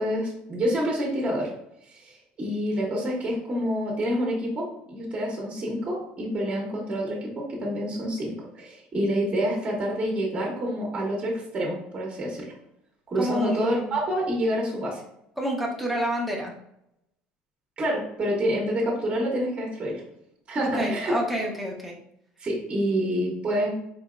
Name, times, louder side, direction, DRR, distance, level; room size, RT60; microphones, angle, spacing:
voice 1, 0.0-1.5 1.9-12.5 13.1-15.0 17.8-20.0 20.5-21.1 22.4-23.7, equal, 30° right, -2 dB, 1.0 m, -27 dB
voice 2, 13.2-13.9 15.4-16.5 20.6-21.9, equal, ahead, -2 dB, 0.7 m, -29 dB
4.0 x 2.7 x 2.4 m, 0.77 s
cardioid pair, 125°, 4 cm